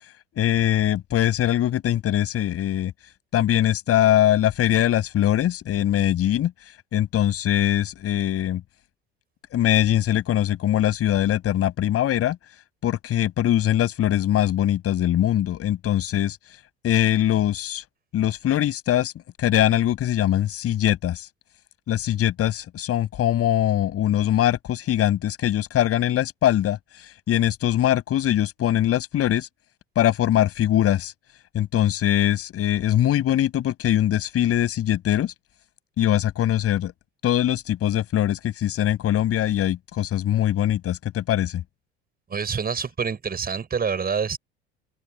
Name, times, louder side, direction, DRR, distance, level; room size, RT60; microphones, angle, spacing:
voice 1, 0.4-2.9 3.3-6.5 6.9-8.6 9.5-12.4 12.8-16.4 16.8-17.8 18.1-19.1 19.4-21.3 21.9-26.8 27.3-29.5 30.0-31.1 31.5-35.3 36.0-36.9 37.2-41.6, left 12 dB, 50° left, 5.9 m, -22 dB
voice 2, 42.3-44.4, right 6 dB, 30° right, 6.4 m, -26 dB
open air
hypercardioid pair, 65°, 31 cm